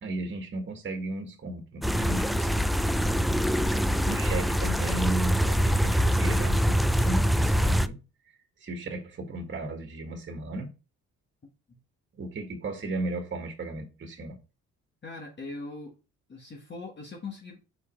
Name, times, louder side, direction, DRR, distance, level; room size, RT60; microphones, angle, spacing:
voice 1, 0.0-2.7 4.0-8.0 8.6-10.7 12.2-14.4, right 2 dB, 40° right, 1.6 m, -35 dB
sound 1, 1.8-7.9, equal, ahead, 0.3 m, -24 dB
voice 2, 15.0-15.9 16.3-17.6, left 3 dB, 35° left, 1.5 m, -40 dB
5.0 x 4.9 x 4.4 m
cardioid pair, 90°, 30 cm